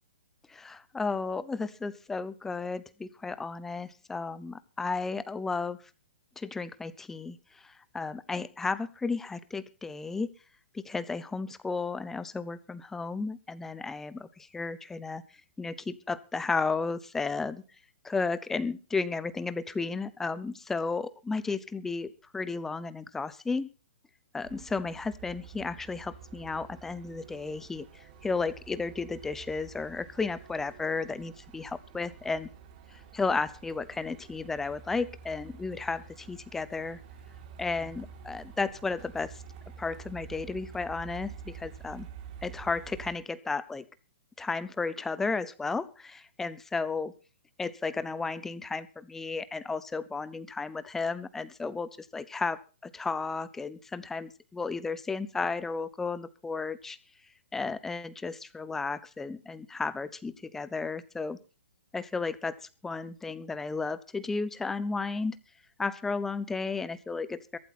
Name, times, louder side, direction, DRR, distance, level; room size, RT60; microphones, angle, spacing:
voice 1, 0.5-5.8 6.4-10.3 10.7-15.2 15.6-17.6 18.0-23.7 24.3-32.5 32.9-37.0 37.6-39.4 39.8-42.1 42.4-43.8 44.4-47.2 47.6-57.0 57.5-61.4 61.9-65.4 65.8-67.6, left 4 dB, 5° left, 15 dB, 0.7 m, -33 dB
Truck, 24.4-43.1, right 7 dB, 40° right, 3.6 m, -49 dB
23.0 x 8.1 x 4.3 m, 0.34 s
hypercardioid pair, 165°, 7 cm